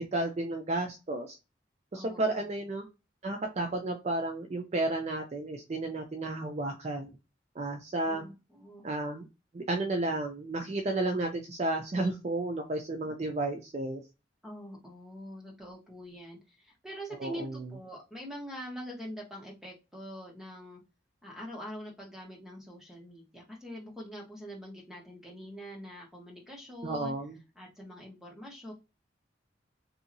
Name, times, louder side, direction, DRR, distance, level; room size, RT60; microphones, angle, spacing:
voice 1, 0.0-1.4 1.9-2.8 3.2-7.1 7.6-8.2 8.8-9.3 9.5-14.0 17.2-17.6 26.8-27.4, right 2 dB, 35° right, 4 dB, 0.4 m, -32 dB
voice 2, 1.9-2.5 8.1-8.8 14.4-20.8 21.2-27.1 27.6-28.7, equal, ahead, -2 dB, 1.0 m, -44 dB
2.7 x 2.6 x 2.6 m, 0.27 s
head